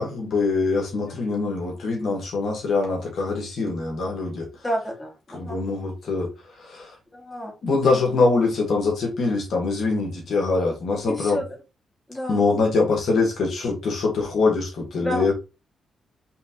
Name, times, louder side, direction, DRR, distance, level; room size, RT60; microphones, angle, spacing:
voice 1, 0.0-4.5 5.3-6.3 6.6-6.9 7.6-11.4 12.3-15.3, left 3 dB, 70° left, 1.6 m, -23 dB
voice 2, 4.6-5.6 7.1-7.5 11.1-11.4 12.1-12.4 15.0-15.3, equal, 15° left, 2.1 m, -30 dB
4.5 x 3.4 x 2.9 m
cardioid pair, 65°, 0 cm